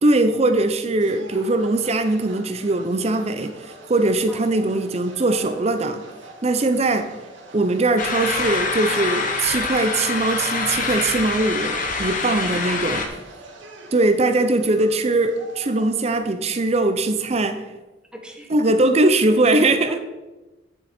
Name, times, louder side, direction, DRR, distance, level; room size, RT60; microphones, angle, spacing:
voice 1, 0.0-6.0 6.4-7.1 7.5-13.1 13.9-17.6 18.5-20.0, right 2 dB, 35° right, 9 dB, 0.5 m, -21 dB
sound 1, 1.0-16.2, right 2 dB, 85° right, 1.8 m, -44 dB
sound 2, 8.0-13.1, left 4 dB, 45° left, 1.1 m, -25 dB
voice 2, 12.4-13.0 18.1-18.9 19.9-20.0, equal, 5° right, 2 dB, 1.1 m, -40 dB
9.0 x 7.6 x 4.2 m, 1.1 s
head